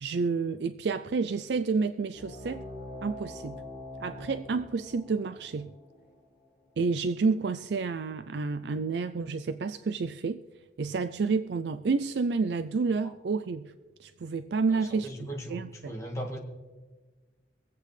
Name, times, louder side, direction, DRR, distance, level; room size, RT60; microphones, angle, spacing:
voice 1, 0.0-2.7 3.0-3.6 4.0-5.7 6.8-10.4 10.8-13.7 14.0-16.0, right 4 dB, 60° right, 11 dB, 0.4 m, -30 dB
sound 1, 2.1-7.2, left 1 dB, 45° left, 4.2 m, -44 dB
voice 2, 14.7-16.4, equal, 15° left, -1 dB, 1.8 m, -38 dB
24.0 x 8.2 x 3.3 m, 1.3 s
head